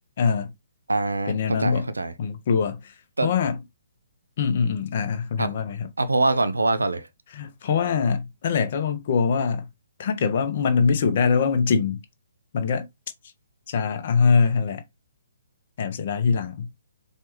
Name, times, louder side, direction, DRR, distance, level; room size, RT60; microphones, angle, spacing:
voice 1, 0.2-0.5 1.3-1.9 2.2-2.9 3.2-3.6 4.4-5.9 7.3-9.7 10.0-12.0 12.5-12.9 13.7-14.8 15.8-16.7, left 5 dB, 40° left, 0.8 m, -23 dB
voice 2, 0.9-2.1 3.2-3.3 5.4-5.5 6.0-7.1, right 2 dB, 70° right, 0.6 m, -24 dB
4.4 x 3.2 x 3.0 m
figure-of-eight pair, 130°, 0 cm